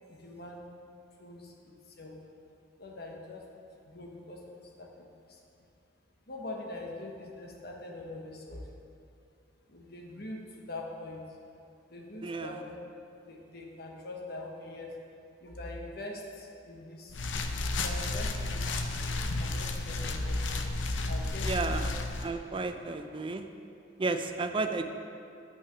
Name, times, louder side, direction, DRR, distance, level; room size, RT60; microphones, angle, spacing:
voice 1, 0.1-0.6 1.2-1.5 2.0-2.2 2.8-3.4 3.8-5.4 6.3-8.6 9.7-11.2 11.9-12.8 13.3-14.9 15.4-17.2 17.7-20.4 21.1-21.8 22.5-22.6, left 2 dB, 55° left, 0 dB, 1.1 m, -43 dB
voice 2, 12.2-12.6 21.4-21.9 22.2-23.4 24.0-24.8, right 3 dB, 25° right, 7 dB, 0.4 m, -32 dB
sound 1, 17.1-22.3, left 2 dB, 75° left, 0.6 m, -32 dB
8.3 x 5.8 x 6.0 m, 2.6 s
head